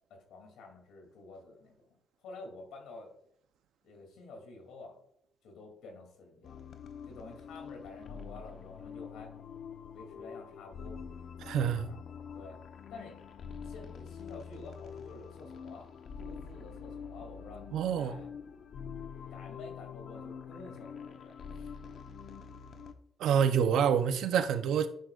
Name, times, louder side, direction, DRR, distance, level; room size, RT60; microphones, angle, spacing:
voice 1, 0.1-3.1 3.8-5.0 5.4-6.7 7.1-9.3 9.9-11.0 11.5-12.0 12.3-12.6 12.9-13.2 13.6-15.9 16.2-18.3 19.3-21.8, left 3 dB, 85° left, 2.9 m, -50 dB
sound 1, 6.4-22.9, left 6 dB, 60° left, 1.0 m, -45 dB
voice 2, 11.4-11.9 17.7-18.2 23.2-24.9, right 8 dB, 80° right, 0.8 m, -27 dB
10.5 x 9.4 x 2.5 m
cardioid pair, 110°, 0 cm